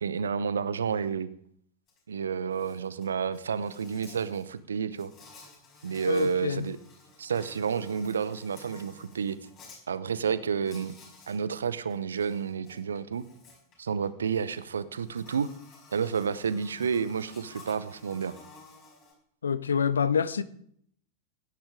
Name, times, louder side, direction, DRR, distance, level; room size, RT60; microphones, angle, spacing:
voice 1, 0.0-1.3 2.1-5.1 5.8-6.8 7.2-9.4 9.9-11.0 11.3-13.2 13.8-15.5 15.9-18.3, right 6 dB, 70° right, 0.7 m, -30 dB
Insect, 1.9-2.0 2.3-9.8 10.6-11.4 11.7-19.1, left 3 dB, 35° left, 5.6 m, -53 dB
voice 2, 6.1-6.7 19.4-20.4, left 6 dB, 70° left, 0.7 m, -26 dB
17.0 x 10.0 x 3.6 m
figure-of-eight pair, 90°, 0 cm